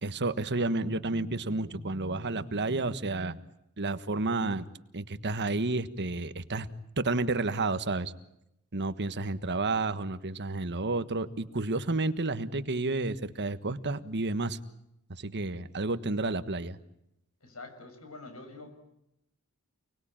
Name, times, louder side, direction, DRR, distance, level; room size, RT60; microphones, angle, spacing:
voice 1, 0.0-3.4 3.8-4.7 4.9-6.7 7.0-8.1 8.7-14.6 15.2-16.8, right 2 dB, 50° right, 11 dB, 1.4 m, -31 dB
voice 2, 17.4-18.7, left 3 dB, 70° left, 8 dB, 6.7 m, -46 dB
29.0 x 20.5 x 9.0 m, 0.81 s
head